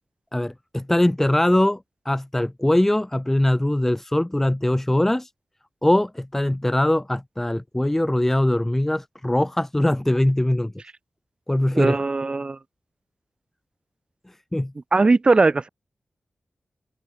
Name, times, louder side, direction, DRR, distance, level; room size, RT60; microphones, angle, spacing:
voice 1, 0.3-5.3 5.8-10.7 11.5-12.0 14.3-14.7, left 1 dB, 10° left, 0.4 m, -22 dB
voice 2, 11.7-12.6 14.9-15.7, right 3 dB, 40° right, 0.5 m, -19 dB
cardioid pair, 60°, 3 cm